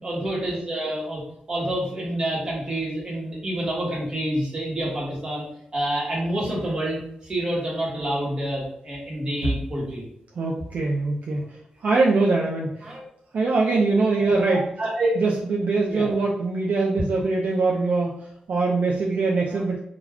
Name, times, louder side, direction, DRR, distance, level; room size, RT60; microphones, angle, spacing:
voice 1, 0.0-1.2 1.5-5.4 5.7-10.0 12.8-13.0 14.2-14.5 14.8-15.2 15.9-16.1 19.5-19.6, right 1 dB, 35° right, -4 dB, 1.1 m, -27 dB
voice 2, 10.4-11.4 11.8-12.9 13.3-14.7 15.2-18.1 18.5-19.8, right 3 dB, 65° right, -2 dB, 0.4 m, -22 dB
2.3 x 2.3 x 3.4 m, 0.75 s
wide cardioid pair, 130°, 3 cm